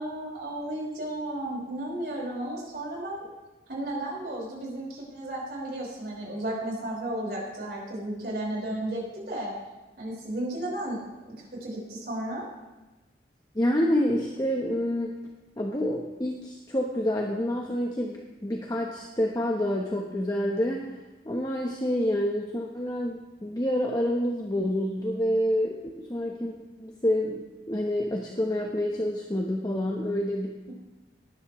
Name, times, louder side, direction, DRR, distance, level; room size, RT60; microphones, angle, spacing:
voice 1, 0.0-3.3 3.7-9.6 10.0-11.0 11.4-12.5, right 1 dB, 60° right, -3 dB, 4.9 m, -33 dB
voice 2, 13.5-15.1 15.6-20.8 21.2-26.5 26.8-30.7, equal, 20° left, -1 dB, 1.0 m, -28 dB
19.0 x 10.5 x 3.1 m, 1.1 s
head